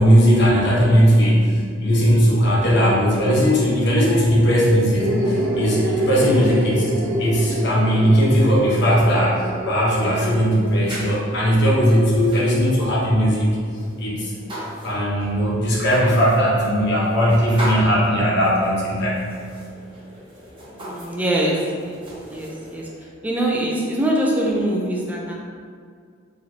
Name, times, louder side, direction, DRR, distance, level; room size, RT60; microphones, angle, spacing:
voice 1, 0.0-6.8 7.2-13.5 14.0-14.3 14.8-19.2, equal, 60° left, -5 dB, 0.9 m, -18 dB
voice 2, 2.5-2.9 6.2-6.5 20.7-22.9 23.2-25.4, right 1 dB, 10° right, -3 dB, 0.5 m, -24 dB
sound 1, 5.0-12.5, right 1 dB, 80° right, 0.7 m, -28 dB
sound 2, 5.5-22.9, equal, 25° right, 1.0 m, -38 dB
4.1 x 3.1 x 2.8 m, 2.1 s
head